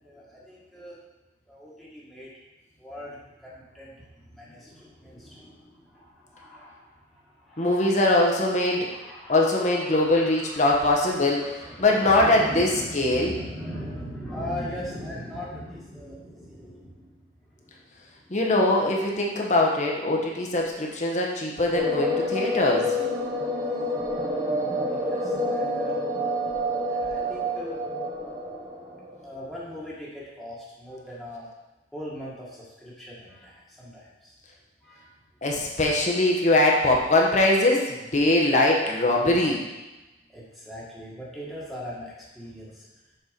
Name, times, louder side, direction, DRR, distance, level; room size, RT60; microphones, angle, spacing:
voice 1, 0.0-0.9 1.5-2.3 2.8-7.9 8.8-17.1 17.6-17.8 18.2-18.4 24.6-26.0 26.9-27.9 28.3-28.4 29.2-31.5 31.9-34.3 34.8-35.1 40.3-42.9, equal, ahead, -7 dB, 1.6 m, -40 dB
voice 2, 7.6-8.9 9.3-11.5 11.8-13.4 18.3-22.9 35.4-39.6, left 2 dB, 40° left, -1 dB, 1.0 m, -22 dB
sound 1, 21.7-29.3, left 1 dB, 20° right, 1.1 m, -28 dB
6.7 x 4.4 x 5.2 m, 1.1 s
head